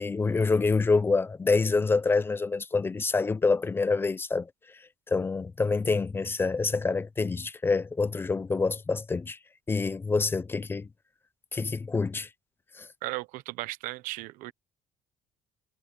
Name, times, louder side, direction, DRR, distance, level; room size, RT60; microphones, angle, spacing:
voice 1, 0.0-4.5 5.1-9.4 9.7-10.9 11.5-12.3 12.8-12.9, left 4 dB, 15° left, 0.5 m, -26 dB
voice 2, 13.0-14.5, right 19 dB, 85° right, 1.0 m, -36 dB
cardioid pair, 140°, 13 cm